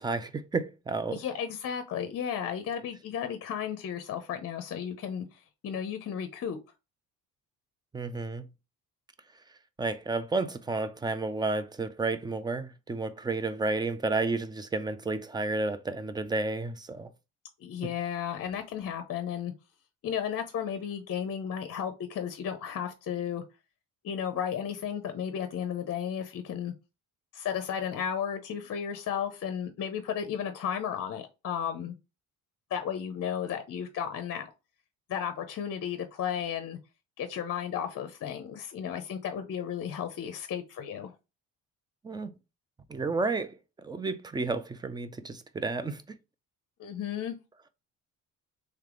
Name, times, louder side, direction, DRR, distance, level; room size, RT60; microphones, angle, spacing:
voice 1, 0.0-1.2 7.9-8.5 9.8-17.1 17.8-17.9 42.0-42.3 42.9-43.6 43.8-46.0, right 3 dB, 15° right, 0.4 m, -31 dB
voice 2, 1.1-6.6 17.6-19.5 20.0-23.4 24.0-26.7 27.3-31.9 32.7-34.5 35.1-36.8 37.2-41.1 46.8-47.4, left 8 dB, 45° left, 0.6 m, -34 dB
3.3 x 3.2 x 3.7 m
cardioid pair, 120°, 33 cm